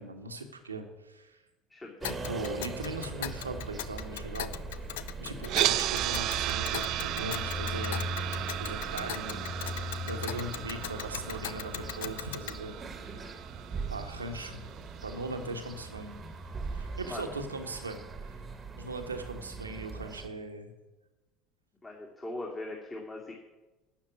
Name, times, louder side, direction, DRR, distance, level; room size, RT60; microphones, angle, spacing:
voice 1, 0.0-1.4 2.0-4.5 5.2-9.5 9.8-12.8 13.9-14.7 15.0-16.1 16.7-18.3 18.8-20.7, right 2 dB, 85° right, 6 dB, 1.4 m, -39 dB
voice 2, 1.7-2.1 5.2-5.5 10.0-10.3 13.0-13.3 17.0-17.2 21.8-23.3, left 2 dB, 20° left, -2 dB, 2.6 m, -41 dB
Tick, 2.0-12.6, left 12 dB, 65° left, 0.5 m, -41 dB
sound 1, 2.0-20.3, right 2 dB, 25° right, 1.5 m, -40 dB
sound 2, 5.4-15.6, right 16 dB, 50° right, 0.4 m, -35 dB
12.0 x 7.3 x 9.6 m, 1.1 s
figure-of-eight pair, 65°, 0 cm